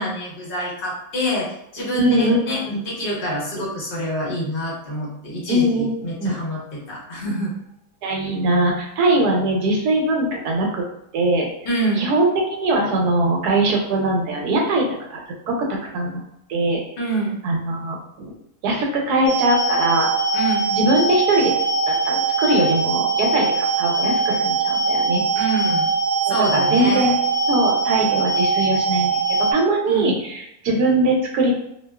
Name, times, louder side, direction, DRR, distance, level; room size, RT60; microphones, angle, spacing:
voice 1, 0.0-2.6 2.8-7.5 11.6-12.1 17.0-17.4 20.3-20.7 25.3-25.9 26.3-27.1 29.9-30.1, right 1 dB, 45° left, -4 dB, 0.7 m, -26 dB
voice 2, 1.9-2.8 5.5-6.4 8.0-10.8 11.1-11.5 12.0-14.9 15.1-15.2 15.5-16.2 16.5-16.8 17.4-18.0 18.2-18.3 18.6-20.1 20.7-21.5 21.9-25.2 26.3-27.1 27.5-29.2 29.5-31.5, right 1 dB, 80° right, 0 dB, 1.1 m, -21 dB
sound 1, 19.3-29.5, right 4 dB, 70° left, 0.3 m, -21 dB
2.6 x 2.2 x 2.2 m, 0.79 s
omnidirectional pair, 1.8 m